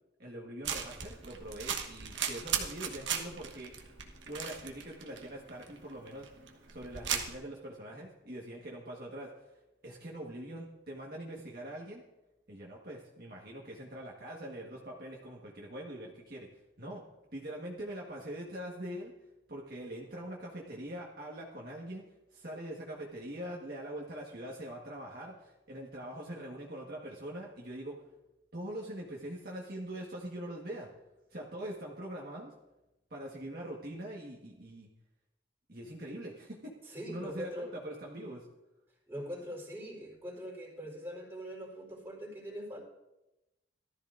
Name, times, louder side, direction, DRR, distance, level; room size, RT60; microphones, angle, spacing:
voice 1, 0.2-3.9 4.2-6.3 6.7-9.5 9.8-12.0 12.5-16.5 16.8-17.0 17.3-19.1 19.5-22.0 22.3-28.0 28.5-30.9 31.3-32.5 33.1-34.9 35.7-38.5, right 1 dB, 50° right, -3 dB, 1.5 m, -43 dB
sound 1, 0.6-7.3, right 7 dB, 75° right, 1.2 m, -37 dB
voice 2, 36.9-37.7 39.1-42.8, equal, 15° right, -3 dB, 3.7 m, -42 dB
18.0 x 13.0 x 2.6 m, 0.97 s
head